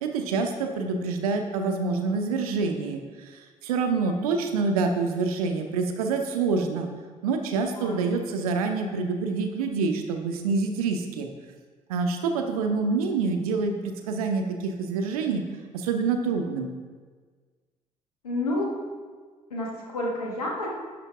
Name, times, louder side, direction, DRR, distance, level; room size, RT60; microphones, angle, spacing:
voice 1, 0.0-6.9 7.2-11.3 11.9-15.4 15.7-16.7, right 4 dB, 75° right, 5 dB, 0.7 m, -27 dB
voice 2, 7.7-8.1 18.2-18.7 19.5-20.7, left 1 dB, 85° left, -2 dB, 1.2 m, -29 dB
11.0 x 5.2 x 3.5 m, 1.5 s
figure-of-eight pair, 40°, 19 cm